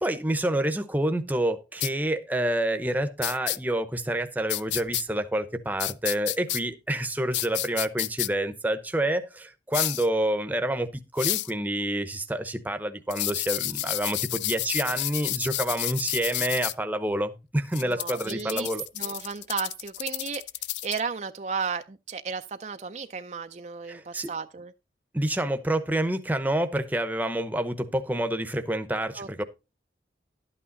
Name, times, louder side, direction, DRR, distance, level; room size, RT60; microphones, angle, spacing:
voice 1, 0.0-18.8 23.9-24.3 25.1-29.4, right 1 dB, 10° right, 0.9 m, -28 dB
sound 1, 1.8-1.9 3.2-3.6 4.5-5.0 5.8-6.6 7.3-8.3 9.7-10.1 11.2-11.5 13.1-16.7 17.7-21.0, left 15 dB, 85° left, 0.5 m, -30 dB
voice 2, 17.8-20.4 20.8-24.7 29.2-29.4, right 5 dB, 40° right, 0.5 m, -34 dB
12.0 x 8.6 x 3.9 m
head